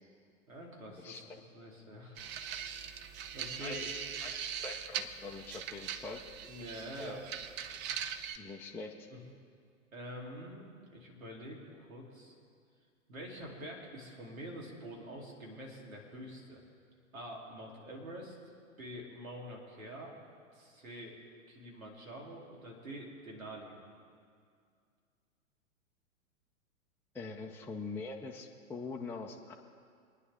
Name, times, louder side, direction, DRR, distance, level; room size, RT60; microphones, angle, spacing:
voice 1, 0.5-1.2 1.5-2.2 2.5-3.0 3.3-3.9 6.4-7.2 9.1-9.2 9.9-12.3 13.1-16.6 17.1-18.4 18.8-20.1 20.5-21.1 21.5-23.8, equal, 80° right, -1 dB, 3.6 m, -46 dB
voice 2, 1.0-1.4 3.6-6.2 7.0-7.3 8.4-9.1 27.1-29.5, left 3 dB, 5° left, -1 dB, 0.7 m, -44 dB
Caçadors de sons - Chuky, 2.2-8.4, right 8 dB, 30° right, 0.7 m, -41 dB
24.5 x 9.9 x 3.7 m, 2.2 s
figure-of-eight pair, 105°, 40 cm